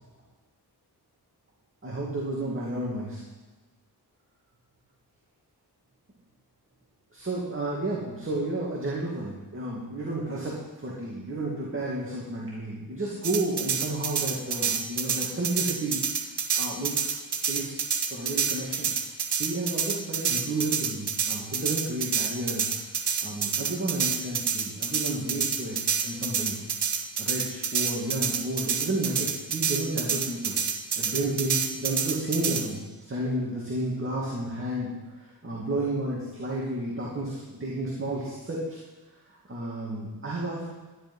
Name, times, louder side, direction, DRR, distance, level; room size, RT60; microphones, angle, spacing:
voice 1, 1.8-3.2 7.1-16.0 16.5-17.1 17.5-17.8 18.1-18.9 19.4-22.9 23.2-26.6 27.2-30.6 31.0-38.8 39.3-40.8, right 2 dB, 30° right, -4 dB, 2.4 m, -32 dB
sound 1, 13.2-32.7, right 6 dB, 80° right, 1.4 m, -28 dB
13.0 x 10.5 x 5.5 m, 1.2 s
wide cardioid pair, 115°, 40 cm